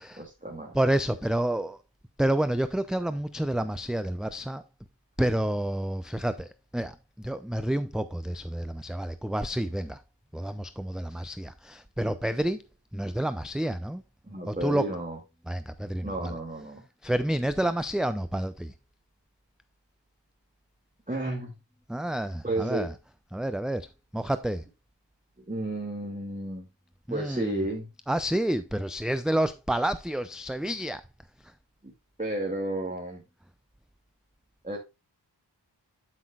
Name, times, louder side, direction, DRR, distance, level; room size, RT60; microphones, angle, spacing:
voice 1, 0.0-0.7 14.2-15.2 16.0-16.8 21.1-21.5 22.4-22.9 25.4-26.7 27.1-27.9 31.8-31.9 32.2-33.2 34.6-34.8, right 1 dB, 20° right, 2.4 m, -32 dB
voice 2, 0.7-1.8 2.2-4.6 5.2-10.0 10.3-12.6 12.9-14.0 14.5-14.9 15.5-16.3 17.0-18.7 21.9-22.9 23.3-24.6 27.1-27.6 28.1-31.0 31.4-31.5, right 1 dB, ahead, 0.5 m, -29 dB
12.0 x 6.1 x 2.4 m
wide cardioid pair, 55°, 43 cm